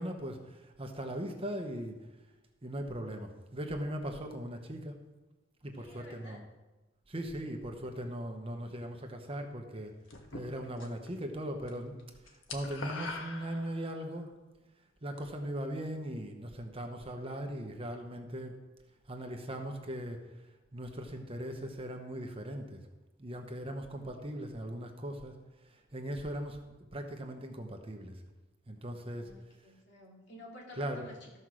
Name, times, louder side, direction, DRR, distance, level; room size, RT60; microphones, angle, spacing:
voice 1, 0.0-2.0 2.6-5.0 5.6-6.4 7.1-9.9 10.3-12.0 12.2-14.3 15.0-18.6 19.1-20.2 20.7-22.8 23.2-25.3 25.6-26.6 26.9-28.2 28.7-29.3 30.7-31.0, right 1 dB, 30° right, 4 dB, 1.1 m, -39 dB
voice 2, 5.7-6.4 29.0-31.3, left 2 dB, 65° left, -2 dB, 2.6 m, -51 dB
sound 1, 10.1-11.1 11.4-11.7 12.0-14.1, left 3 dB, 90° left, 1.3 m, -43 dB
13.5 x 5.5 x 6.3 m, 1.1 s
head